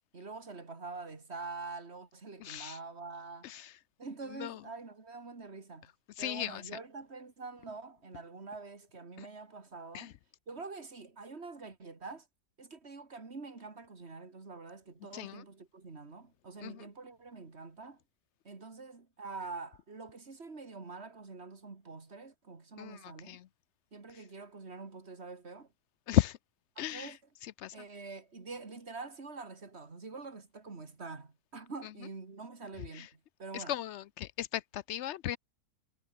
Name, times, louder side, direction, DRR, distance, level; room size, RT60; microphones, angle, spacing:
voice 1, 0.1-3.6 4.0-5.9 6.2-10.1 10.5-12.3 12.6-18.0 18.4-23.4 23.9-25.7 26.8-27.2 27.7-33.7, right 4 dB, 40° right, 2.7 m, -46 dB
voice 2, 2.4-2.8 3.4-3.7 4.3-4.6 6.2-6.6 9.2-9.3 9.9-10.1 15.1-15.4 16.6-16.8 22.8-23.5 26.1-26.4 26.8-27.1 27.6-27.7 32.9-33.1 33.5-35.4, left 12 dB, 65° left, 0.7 m, -35 dB
omnidirectional pair, 1.6 m